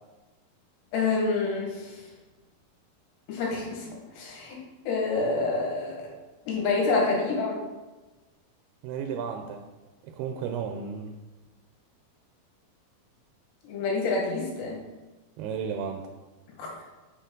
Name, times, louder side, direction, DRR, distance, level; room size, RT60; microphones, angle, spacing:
voice 1, 0.9-2.0 3.3-3.9 4.1-4.6 4.9-6.1 6.5-7.6 13.7-14.8 16.6-16.7, left 3 dB, 90° left, -2 dB, 3.7 m, -27 dB
voice 2, 8.8-9.6 10.0-11.2 15.4-16.0, right 7 dB, 80° right, 4 dB, 2.5 m, -33 dB
7.0 x 6.6 x 3.8 m, 1.1 s
omnidirectional pair, 4.7 m